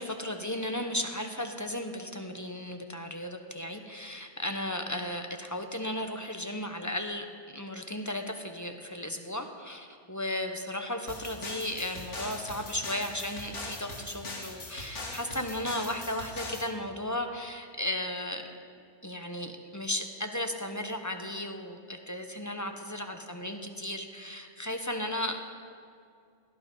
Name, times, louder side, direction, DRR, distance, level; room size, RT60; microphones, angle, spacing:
voice 1, 0.0-18.5 19.0-25.4, left 1 dB, 15° left, 5 dB, 0.9 m, -35 dB
sound 1, 11.1-16.7, left 2 dB, 80° left, 2.3 m, -41 dB
17.5 x 12.5 x 5.4 m, 2.3 s
omnidirectional pair, 1.2 m